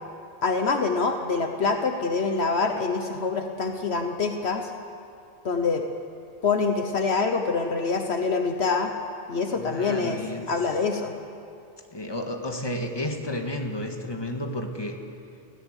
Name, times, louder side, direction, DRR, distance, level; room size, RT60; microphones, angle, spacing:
voice 1, 0.4-4.7 5.4-5.8 6.4-8.9 9.3-10.2 10.5-11.1, left 4 dB, 65° left, 5 dB, 1.3 m, -25 dB
voice 2, 9.5-10.5 11.9-15.0, left 1 dB, 20° left, 3 dB, 1.8 m, -32 dB
21.0 x 16.5 x 8.2 m, 2.6 s
omnidirectional pair, 1.2 m